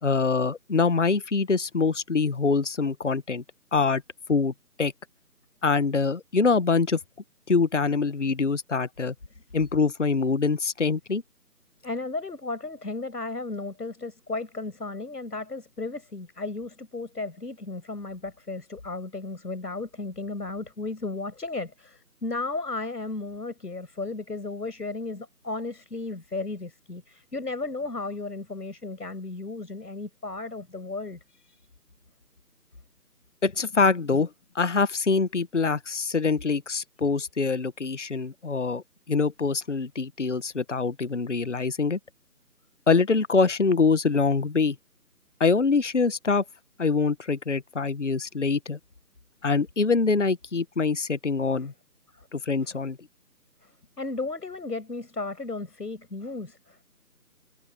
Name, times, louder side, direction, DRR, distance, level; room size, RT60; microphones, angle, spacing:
voice 1, 0.0-3.4 3.7-4.0 4.3-4.5 4.8-4.9 5.6-7.0 7.5-9.1 9.5-11.2 33.4-34.3 34.5-42.0 42.9-44.7 45.4-46.4 46.8-48.8 49.4-51.7 52.3-53.0, left 4 dB, 50° left, 1.2 m, -24 dB
voice 2, 11.8-31.6 51.6-51.7 52.1-52.3 52.6-52.7 53.6-53.7 54.0-56.8, left 3 dB, 85° left, 6.5 m, -34 dB
figure-of-eight pair, 175°, 46 cm